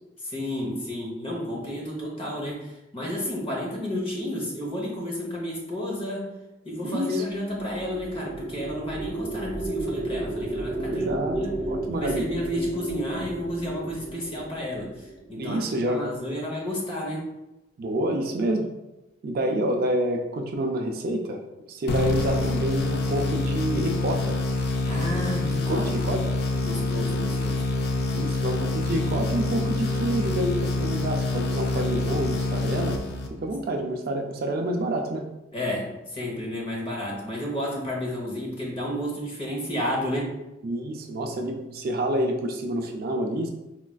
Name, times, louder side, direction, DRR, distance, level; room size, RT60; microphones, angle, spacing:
voice 1, 0.2-6.3 6.6-11.1 11.3-11.6 11.9-17.3 24.8-26.2 26.6-27.6 35.5-40.4, equal, 25° left, -3 dB, 0.8 m, -31 dB
voice 2, 6.8-7.2 10.9-11.4 11.6-12.3 15.4-16.1 17.8-18.7 19.2-21.4 21.7-24.4 25.7-26.2 28.1-33.0 33.4-35.3 40.6-43.5, right 1 dB, 50° right, 3 dB, 0.3 m, -28 dB
sound 1, 7.3-15.8, right 2 dB, 10° right, 0.7 m, -33 dB
sound 2, 21.9-33.6, left 3 dB, 55° left, 0.4 m, -26 dB
4.2 x 2.4 x 2.2 m, 0.96 s
head